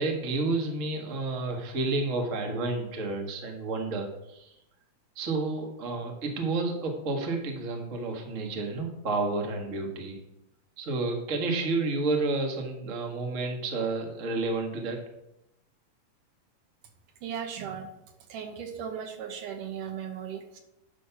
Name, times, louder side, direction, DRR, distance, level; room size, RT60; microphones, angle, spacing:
voice 1, 0.0-4.5 5.1-10.2 10.8-15.0, right 3 dB, 40° right, 2 dB, 1.1 m, -30 dB
voice 2, 17.2-17.9 18.3-20.6, right 8 dB, 75° right, 6 dB, 2.6 m, -37 dB
9.3 x 6.4 x 5.8 m, 0.87 s
omnidirectional pair, 3.8 m